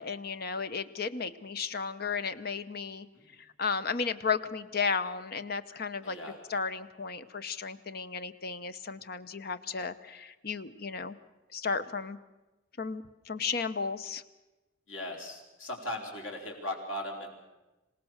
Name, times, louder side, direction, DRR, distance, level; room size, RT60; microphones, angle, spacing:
voice 1, 0.0-3.1 3.4-6.2 6.5-11.2 11.5-12.2 12.8-14.2, left 5 dB, 50° left, 12 dB, 0.8 m, -34 dB
voice 2, 6.0-6.4 14.9-17.3, left 1 dB, 90° left, 1 dB, 4.2 m, -38 dB
26.5 x 18.0 x 6.5 m, 1.1 s
head